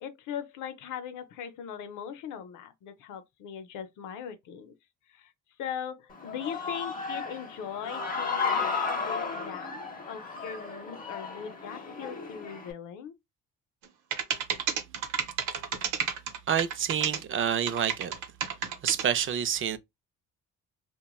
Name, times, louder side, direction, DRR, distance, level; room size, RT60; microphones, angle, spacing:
voice 1, 0.0-4.7 5.1-5.3 5.6-13.1, left 8 dB, 85° left, 0.6 m, -40 dB
Human voice / Cheering, 6.1-12.7, left 5 dB, 30° left, 0.8 m, -34 dB
sound 1, 13.8-13.9 14.1-17.2 17.7-19.0, right 8 dB, 90° right, 0.7 m, -30 dB
voice 2, 16.5-18.1 18.8-19.8, right 8 dB, 45° right, 0.4 m, -28 dB
3.0 x 2.2 x 2.2 m
cardioid pair, 90°, 30 cm